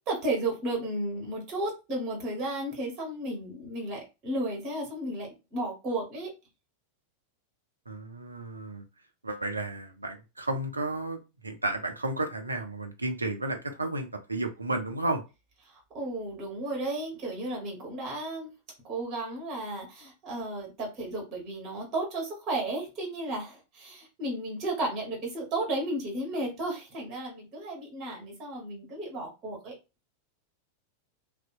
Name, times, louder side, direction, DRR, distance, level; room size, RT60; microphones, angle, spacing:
voice 1, 0.1-6.3 15.7-18.5 18.8-29.7, right 2 dB, 35° right, -1 dB, 1.2 m, -33 dB
voice 2, 7.9-8.8 9.2-15.2, right 2 dB, 80° right, 6 dB, 0.4 m, -32 dB
2.7 x 2.1 x 2.4 m, 0.28 s
figure-of-eight pair, 90°, 0 cm